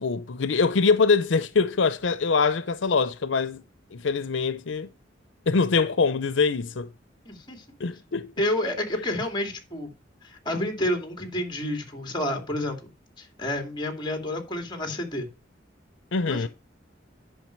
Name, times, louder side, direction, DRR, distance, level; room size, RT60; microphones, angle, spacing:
voice 1, 0.0-3.6 3.9-4.9 5.5-6.9 7.8-8.3 16.1-16.5, left 4 dB, 80° left, 0.6 m, -23 dB
voice 2, 7.2-7.6 8.4-9.9 10.2-12.9 13.2-15.3 16.3-16.5, left 1 dB, 25° left, 2.6 m, -29 dB
10.5 x 5.8 x 4.5 m
head